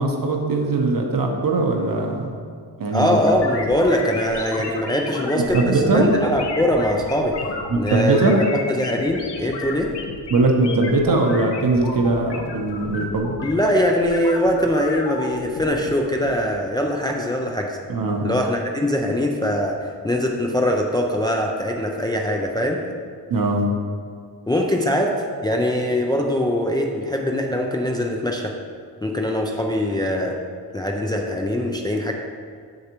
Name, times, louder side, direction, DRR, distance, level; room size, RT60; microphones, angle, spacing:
voice 1, 0.0-2.3 2.8-3.2 5.3-6.1 7.7-8.4 10.3-13.3 17.9-18.3 23.3-23.7, right 3 dB, 55° right, 2 dB, 0.9 m, -20 dB
voice 2, 2.9-7.4 7.7-9.9 13.4-17.8 18.2-19.8 20.0-22.8 24.5-25.1 25.4-28.5 29.0-30.4 30.7-32.1, left 1 dB, 10° left, 1 dB, 0.4 m, -22 dB
sound 1, 3.3-16.3, left 3 dB, 80° left, 0.9 m, -33 dB
7.7 x 6.5 x 3.0 m, 2.1 s
wide cardioid pair, 135°, 41 cm